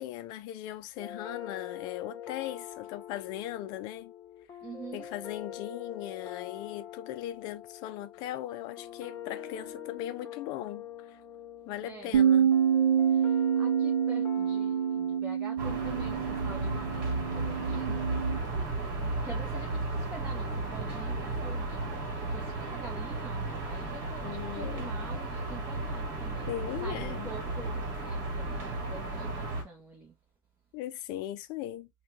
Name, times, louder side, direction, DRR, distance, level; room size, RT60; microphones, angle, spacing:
voice 1, 0.0-4.1 4.9-11.2 11.7-12.5 24.2-24.9 26.5-27.3 30.7-31.9, left 13 dB, 40° left, 0.5 m, -38 dB
sound 1, 1.0-15.2, left 9 dB, 20° left, 1.0 m, -44 dB
voice 2, 4.6-5.1 11.8-12.2 13.1-30.2, right 3 dB, 15° right, 0.9 m, -46 dB
Bass guitar, 12.1-18.4, right 8 dB, 75° right, 0.6 m, -27 dB
sound 2, 15.6-29.6, right 2 dB, 35° right, 1.6 m, -34 dB
4.3 x 2.3 x 3.0 m
hypercardioid pair, 130°, 11 cm